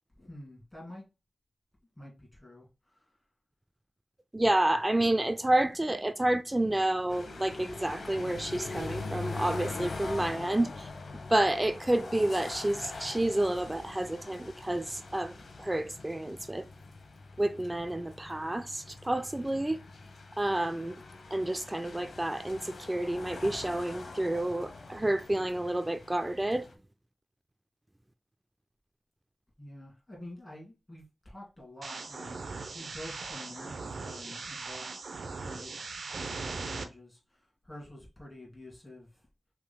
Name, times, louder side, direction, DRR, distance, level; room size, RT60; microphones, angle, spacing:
voice 1, 0.1-1.0 2.0-3.0 29.6-32.5 32.7-34.8 35.4-35.8 36.2-39.2, left 1 dB, 15° left, 2.4 m, -48 dB
voice 2, 4.3-10.9 11.3-16.7 17.4-19.8 20.4-21.0 21.3-26.7, right 1 dB, 15° right, 0.3 m, -29 dB
sound 1, 7.1-26.7, left 3 dB, 75° left, 0.9 m, -43 dB
sound 2, 31.8-36.8, right 4 dB, 75° right, 0.7 m, -39 dB
5.7 x 3.7 x 2.3 m
wide cardioid pair, 115°, 0 cm